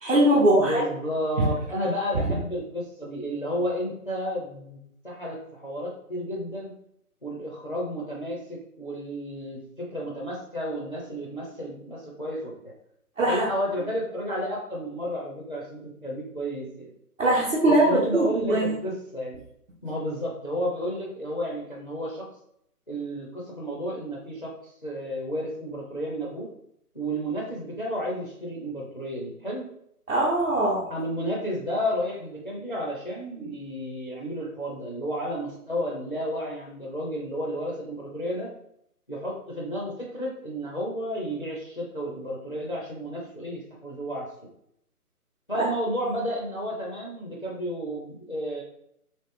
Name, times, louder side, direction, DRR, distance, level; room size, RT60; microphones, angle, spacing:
voice 1, 0.0-0.8 13.2-13.4 17.2-18.7 30.1-30.8, right 1 dB, 55° right, -5 dB, 0.8 m, -21 dB
voice 2, 0.5-6.7 7.2-12.7 13.2-16.9 17.6-19.4 19.8-22.3 22.9-26.5 26.9-29.7 30.9-38.5 39.1-44.3 45.5-48.6, equal, 35° left, -3 dB, 0.4 m, -32 dB
2.9 x 2.9 x 3.1 m, 0.73 s
figure-of-eight pair, 160°, 46 cm